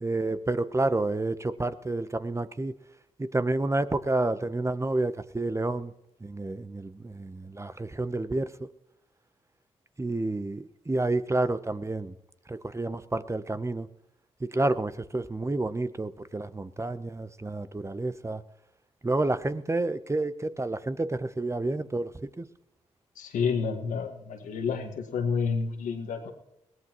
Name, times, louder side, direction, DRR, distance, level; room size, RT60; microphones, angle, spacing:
voice 1, 0.0-2.8 3.2-5.9 6.2-8.7 10.0-12.1 12.5-13.9 14.4-18.4 19.0-22.5, right 2 dB, 20° right, 0.8 m, -29 dB
voice 2, 23.2-26.3, left 5 dB, 80° left, 1.7 m, -29 dB
21.5 x 17.0 x 3.1 m
supercardioid pair, 50°, 13 cm